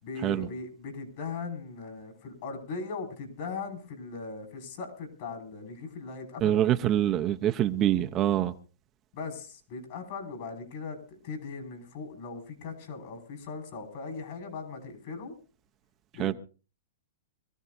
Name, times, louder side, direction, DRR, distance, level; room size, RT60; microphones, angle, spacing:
voice 1, 0.0-6.8 9.1-15.3 16.1-16.3, left 4 dB, 50° left, 5.8 m, -39 dB
voice 2, 6.4-8.5 16.2-16.3, right 12 dB, 25° right, 0.8 m, -25 dB
25.0 x 14.5 x 2.7 m
hypercardioid pair, 145°, 0 cm